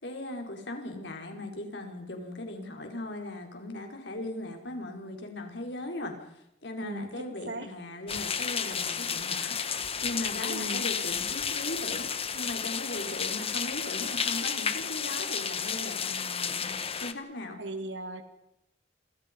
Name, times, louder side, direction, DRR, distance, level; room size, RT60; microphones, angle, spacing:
voice 1, 0.0-6.1 6.6-17.6, left 1 dB, 70° left, 2 dB, 5.2 m, -38 dB
voice 2, 6.8-7.7 10.4-10.8 17.6-18.2, right 1 dB, 90° right, 7 dB, 3.0 m, -38 dB
sound 1, 8.1-17.1, left 6 dB, 35° left, 1.6 m, -32 dB
29.5 x 27.0 x 5.6 m, 0.85 s
head